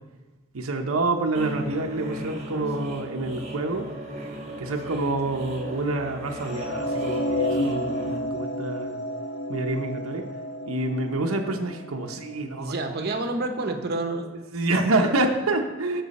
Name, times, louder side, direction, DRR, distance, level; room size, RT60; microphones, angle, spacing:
voice 1, 0.5-3.9 4.6-9.0 9.5-10.2 10.7-12.8 14.5-16.0, right 2 dB, 85° right, 3 dB, 0.8 m, -27 dB
sound 1, 1.3-8.2, right 1 dB, 35° right, 1.4 m, -36 dB
sound 2, 6.4-12.7, left 1 dB, 60° left, 0.8 m, -31 dB
voice 2, 12.6-14.3 15.0-15.2, right 2 dB, 50° right, 5 dB, 1.0 m, -29 dB
13.0 x 6.1 x 4.2 m, 1.2 s
head